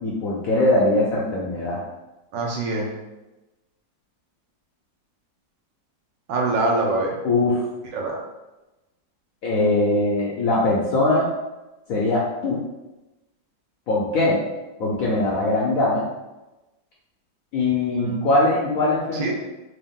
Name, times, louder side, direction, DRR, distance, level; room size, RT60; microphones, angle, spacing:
voice 1, 0.0-1.8 7.2-7.6 9.4-11.3 11.9-12.6 13.9-14.4 14.8-16.0 17.5-19.3, left 2 dB, 65° left, -4 dB, 0.8 m, -21 dB
voice 2, 2.3-2.9 6.3-7.1 7.9-8.2 18.0-18.3 19.1-19.3, right 2 dB, 75° right, -1 dB, 1.4 m, -24 dB
3.4 x 2.8 x 3.6 m, 1.0 s
omnidirectional pair, 2.0 m